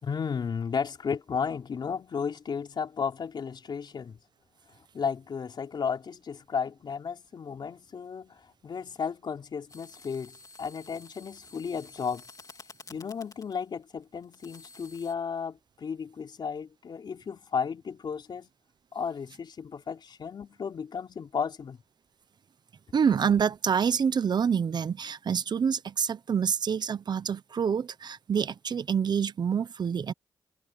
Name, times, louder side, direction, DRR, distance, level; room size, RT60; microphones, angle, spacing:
voice 1, 0.0-4.2 4.9-12.2 12.9-18.5 18.9-21.8, left 6 dB, 60° left, 3.8 m, -34 dB
sound 1, 9.7-15.1, left 3 dB, 45° left, 3.1 m, -51 dB
voice 2, 22.9-30.1, right 7 dB, 55° right, 0.8 m, -27 dB
cardioid pair, 75°, 8 cm